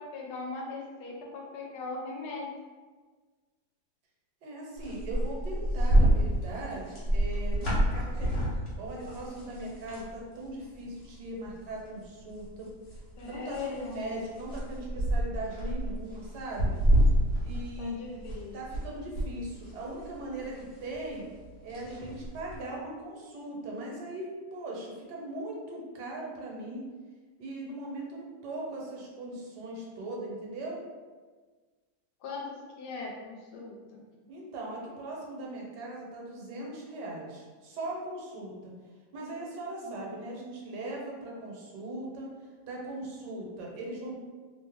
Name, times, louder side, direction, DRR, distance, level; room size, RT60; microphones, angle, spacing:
voice 1, 0.0-2.5 13.2-14.2 17.8-18.6 32.2-34.0 39.8-40.1, left 3 dB, 75° left, -1 dB, 1.2 m, -39 dB
voice 2, 4.4-8.5 8.8-12.7 13.2-16.8 17.4-21.2 21.6-26.8 27.4-30.8 34.3-38.7 39.1-42.3 42.7-44.2, right 1 dB, 75° right, -2 dB, 1.2 m, -39 dB
sound 1, 4.8-10.1 10.4-10.6 11.0-11.8 12.3-18.8 19.1-22.6, right 1 dB, 50° left, 0.8 m, -28 dB
2.9 x 2.0 x 3.4 m, 1.4 s
omnidirectional pair, 1.9 m